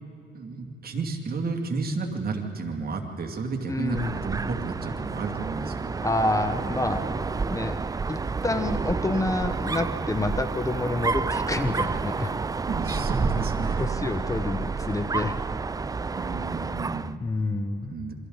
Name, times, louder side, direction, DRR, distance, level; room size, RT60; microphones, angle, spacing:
voice 1, 0.3-6.1 6.7-7.2 12.7-13.8 16.2-17.2 17.9-18.1, right 4 dB, 50° right, 2 dB, 2.5 m, -32 dB
voice 2, 3.7-4.2 6.0-7.0 7.5-7.8 8.1-12.4 13.8-15.4 17.2-17.9, left 2 dB, 15° left, 9 dB, 0.8 m, -28 dB
Dog, 3.8-17.1, right 4 dB, 20° right, 0.4 m, -30 dB
27.0 x 24.5 x 4.0 m, 2.8 s
cardioid pair, 90°, 20 cm